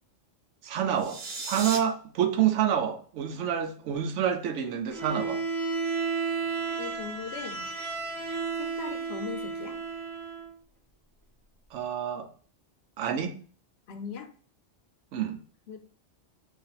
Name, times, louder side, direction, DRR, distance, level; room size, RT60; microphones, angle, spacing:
voice 1, 0.6-5.4 11.7-12.3 13.0-13.3 15.1-15.4, right 9 dB, 90° right, 7 dB, 0.9 m, -28 dB
sound 1, 0.9-1.8, right 3 dB, 65° right, 1.0 m, -35 dB
Bowed string instrument, 4.9-10.5, right 4 dB, ahead, 1.0 m, -32 dB
voice 2, 6.8-7.7 8.6-9.8 13.9-14.3 15.7-15.8, left 6 dB, 65° left, 6 dB, 0.9 m, -39 dB
3.3 x 2.5 x 4.0 m, 0.42 s
omnidirectional pair, 1.2 m